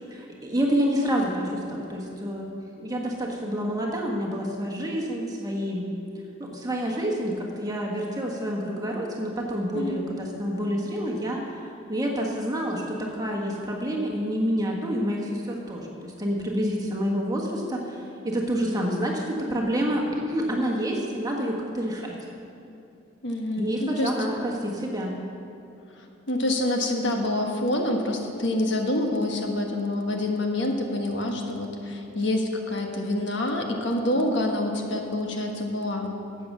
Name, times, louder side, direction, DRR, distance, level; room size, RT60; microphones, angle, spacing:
voice 1, 0.1-2.5 2.8-5.9 6.4-11.6 11.9-22.1 23.6-25.1, equal, 20° right, -1 dB, 1.4 m, -28 dB
voice 2, 9.7-10.1 23.2-24.1 26.0-36.1, left 1 dB, 60° left, 2 dB, 1.3 m, -27 dB
12.0 x 7.9 x 7.4 m, 2.7 s
head